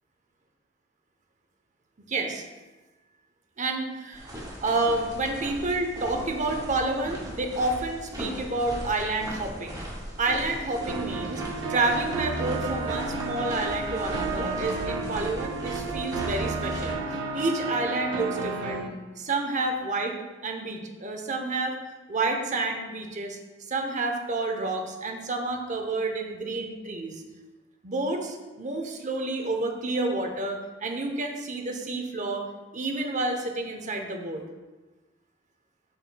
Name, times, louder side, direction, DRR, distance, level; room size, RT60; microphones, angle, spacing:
voice 1, 2.1-2.4 3.6-4.3 4.6-9.8 10.2-11.4 11.7-17.0 17.3-18.8 19.2-20.1 20.4-21.8 22.1-23.4 23.7-27.2 27.8-32.4 32.7-34.4, right 2 dB, 40° right, 3 dB, 0.8 m, -29 dB
sound 1, 4.1-16.9, equal, 20° right, 1.7 m, -39 dB
sound 2, 10.9-18.9, right 3 dB, 75° right, 0.8 m, -32 dB
11.0 x 4.4 x 2.2 m, 1.2 s
head